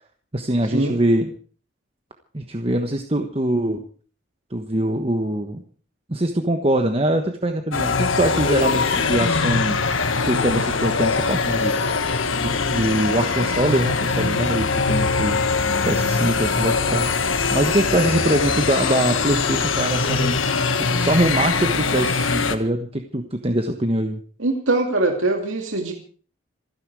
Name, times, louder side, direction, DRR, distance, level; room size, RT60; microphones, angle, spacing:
voice 1, 0.3-1.3 2.3-3.8 4.5-5.6 6.1-9.8 10.2-12.2 12.4-15.4 15.8-20.4 20.8-24.2, right 1 dB, 30° right, 6 dB, 1.2 m, -23 dB
sound 1, 7.7-22.6, left 4 dB, 90° left, 1.6 m, -22 dB
voice 2, 24.4-25.9, right 2 dB, 85° right, 3 dB, 2.5 m, -22 dB
27.0 x 10.0 x 4.8 m, 0.43 s
head